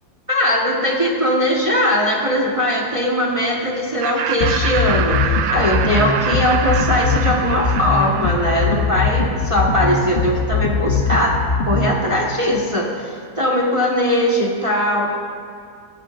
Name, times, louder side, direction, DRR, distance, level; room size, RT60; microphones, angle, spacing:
voice 1, 0.3-15.2, equal, 20° right, -3 dB, 1.0 m, -20 dB
Laughter, 4.0-9.3, right 8 dB, 80° right, 1.4 m, -26 dB
sound 1, 4.4-12.0, left 4 dB, 45° left, 0.8 m, -20 dB
17.5 x 12.0 x 2.5 m, 2.3 s
omnidirectional pair, 2.1 m